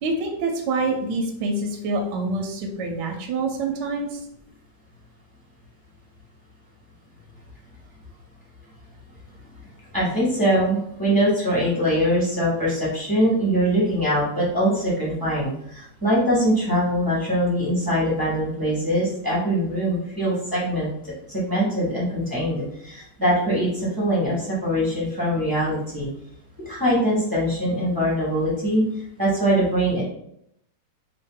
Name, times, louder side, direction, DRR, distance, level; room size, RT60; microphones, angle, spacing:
voice 1, 0.0-4.2, right 2 dB, 75° right, 2 dB, 1.2 m, -26 dB
voice 2, 9.9-26.1 26.6-30.0, equal, 15° right, -8 dB, 0.9 m, -23 dB
2.8 x 2.8 x 3.6 m, 0.74 s
omnidirectional pair, 2.0 m